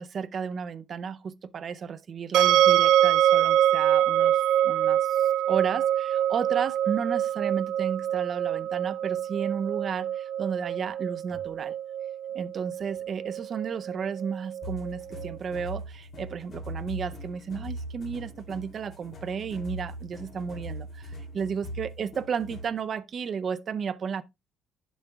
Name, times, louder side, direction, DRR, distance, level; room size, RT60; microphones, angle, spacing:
voice 1, 0.0-11.8 12.3-24.2, right 6 dB, 40° right, 0.5 m, -33 dB
sound 1, 2.3-15.3, right 11 dB, 75° right, 0.7 m, -25 dB
sound 2, 14.6-22.8, equal, 35° left, 2.6 m, -40 dB
10.5 x 7.1 x 2.2 m
cardioid pair, 160°, 0 cm